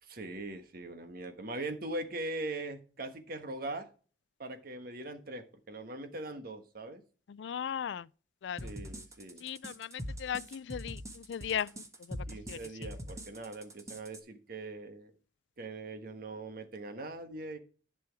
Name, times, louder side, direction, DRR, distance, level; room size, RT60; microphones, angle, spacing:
voice 1, 0.0-3.9 4.4-7.0 8.6-9.4 12.3-15.1 15.6-17.6, right 2 dB, 55° right, 1.4 m, -41 dB
voice 2, 7.4-8.0 8.4-8.6 9.4-11.7 12.1-12.6, left 8 dB, 85° left, 0.4 m, -37 dB
sound 1, 8.6-14.2, equal, 20° right, 1.5 m, -43 dB
11.0 x 6.2 x 4.7 m
head